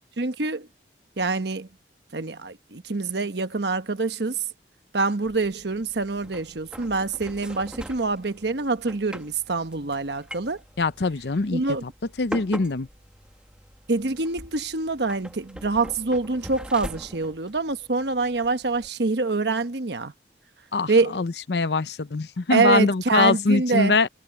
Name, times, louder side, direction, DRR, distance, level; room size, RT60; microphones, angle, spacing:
voice 1, 0.2-0.7 1.2-1.7 2.1-4.4 4.9-10.6 11.5-11.8 13.9-20.1 20.9-21.2 22.5-24.0, right 3 dB, 70° right, 1.1 m, -25 dB
sound 1, 5.3-18.9, equal, 5° right, 1.6 m, -42 dB
voice 2, 10.8-11.9 12.2-12.9 20.7-24.1, left 3 dB, 70° left, 0.7 m, -23 dB
head